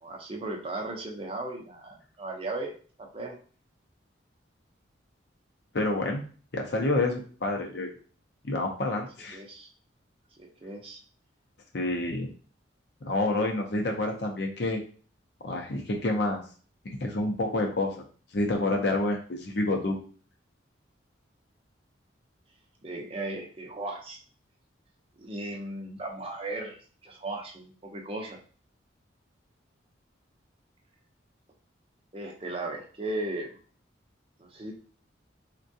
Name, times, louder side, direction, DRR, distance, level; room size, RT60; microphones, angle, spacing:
voice 1, 0.0-2.7 3.0-3.4 9.3-9.7 10.4-11.0 22.8-24.2 25.2-28.4 32.1-33.6 34.4-34.7, right 2 dB, 30° right, 1 dB, 0.5 m, -36 dB
voice 2, 5.7-6.2 6.5-7.9 8.4-9.4 11.7-12.3 13.0-14.8 15.4-16.4 16.8-18.0 18.3-20.0, left 2 dB, 55° left, 2 dB, 0.6 m, -28 dB
3.5 x 2.2 x 2.6 m, 0.41 s
head